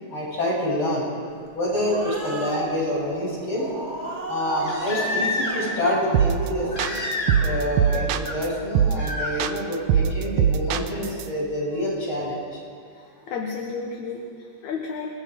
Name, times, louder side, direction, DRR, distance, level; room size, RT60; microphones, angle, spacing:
voice 1, 0.1-1.1 1.5-3.6 4.3-6.7 7.4-12.6, left 1 dB, 40° left, -5 dB, 8.5 m, -27 dB
Growling, 1.5-8.3, right 2 dB, 25° right, 2.3 m, -36 dB
Crying sobbing, 1.7-1.8 4.5-5.8 6.7-7.6 7.8-8.4 9.0-9.3 10.9-11.0, left 2 dB, 25° left, 3.7 m, -29 dB
sound 1, 6.1-6.5 6.8-8.5 8.8-9.1 9.4-11.2, right 8 dB, 80° right, 2.2 m, -21 dB
voice 2, 12.9-15.1, left 5 dB, 75° left, 1 dB, 2.8 m, -32 dB
29.0 x 20.5 x 5.3 m, 2.2 s
omnidirectional pair, 3.4 m